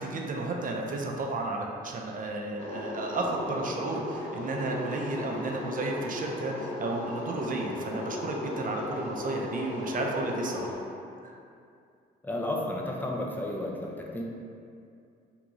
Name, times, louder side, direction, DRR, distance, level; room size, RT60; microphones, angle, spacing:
voice 1, 0.0-10.7 11.2-11.3, right 2 dB, 45° right, 0 dB, 0.5 m, -33 dB
sound 1, 2.6-10.7, left 2 dB, 60° left, 1.2 m, -36 dB
voice 2, 12.2-14.2, left 1 dB, 10° left, -1 dB, 0.5 m, -32 dB
3.6 x 2.4 x 3.0 m, 2.4 s
supercardioid pair, 55°, 20 cm